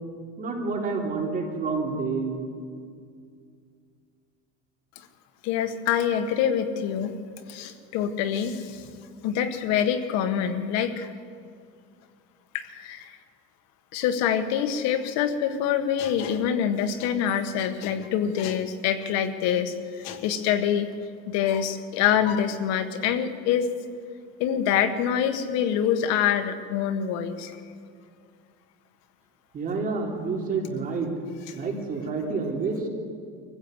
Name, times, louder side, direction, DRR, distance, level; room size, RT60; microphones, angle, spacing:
voice 1, 0.4-2.5 29.5-31.1 31.5-32.9, right 4 dB, 30° right, 1 dB, 3.4 m, -28 dB
voice 2, 5.4-7.1 7.5-8.9 9.2-11.1 12.5-13.1 13.9-20.9 21.3-23.7 24.4-27.5, left 9 dB, 60° left, 8 dB, 1.6 m, -25 dB
24.0 x 15.0 x 8.2 m, 2.3 s
cardioid pair, 145°, 30 cm